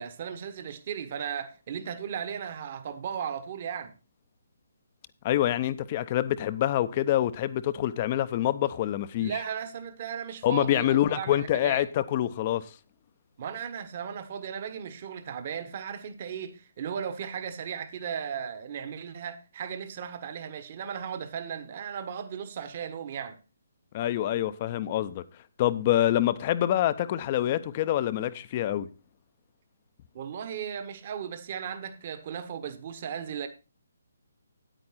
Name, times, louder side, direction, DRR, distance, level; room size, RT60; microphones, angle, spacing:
voice 1, 0.0-3.9 9.2-11.9 13.4-23.4 30.1-33.5, right 8 dB, 40° right, 1.2 m, -36 dB
voice 2, 5.2-9.3 10.4-12.7 23.9-25.2 25.6-28.9, left 12 dB, 35° left, 0.6 m, -26 dB
9.5 x 9.0 x 4.2 m
figure-of-eight pair, 140°, 0 cm